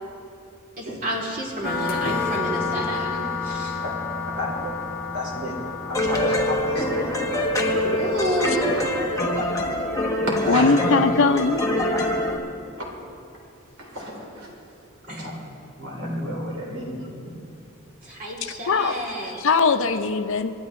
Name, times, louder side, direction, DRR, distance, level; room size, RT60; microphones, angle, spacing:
voice 1, 0.8-3.8 7.8-8.8 11.2-11.3 15.1-15.3 18.0-19.4, right 1 dB, 40° right, -3 dB, 3.1 m, -30 dB
sound 1, 1.6-9.1, left 4 dB, 45° left, 1.4 m, -30 dB
voice 2, 4.4-4.7 5.1-7.1 10.3-10.7 13.8-14.5 15.1-15.3 15.8-17.4, equal, 70° right, -2 dB, 3.5 m, -31 dB
sound 2, 5.9-12.4, left 1 dB, 15° left, 1.3 m, -24 dB
voice 3, 10.5-11.6 18.7-18.9 19.4-20.5, left 4 dB, 65° left, 9 dB, 0.6 m, -20 dB
27.0 x 11.5 x 3.2 m, 2.6 s
head